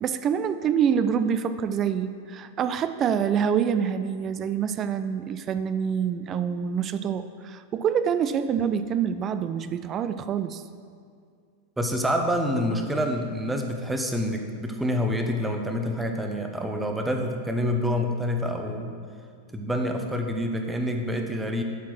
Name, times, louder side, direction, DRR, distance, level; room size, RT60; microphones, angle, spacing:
voice 1, 0.0-10.6, right 7 dB, 30° right, 11 dB, 0.3 m, -26 dB
voice 2, 11.8-19.0 19.5-21.6, equal, 5° right, 4 dB, 0.7 m, -27 dB
8.2 x 4.5 x 6.1 m, 2.2 s
figure-of-eight pair, 90°, 0 cm